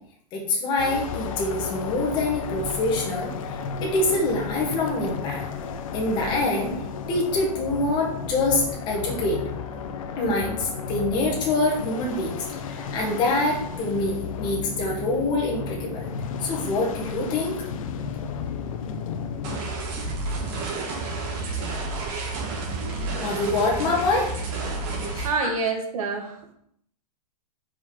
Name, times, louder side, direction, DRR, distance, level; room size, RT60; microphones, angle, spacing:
voice 1, 0.3-5.4 5.9-6.7 7.1-9.4 10.2-16.1 16.4-17.6 23.2-24.3 25.1-25.5, left 2 dB, 20° left, -2 dB, 1.8 m, -25 dB
sound 1, 0.8-19.6, left 6 dB, 55° left, 0.8 m, -33 dB
sound 2, 19.4-25.2, right 3 dB, 30° right, 1.5 m, -30 dB
voice 2, 25.2-26.5, right 4 dB, 55° right, 2 dB, 1.7 m, -27 dB
5.3 x 4.6 x 5.2 m, 0.70 s
hypercardioid pair, 165°, 21 cm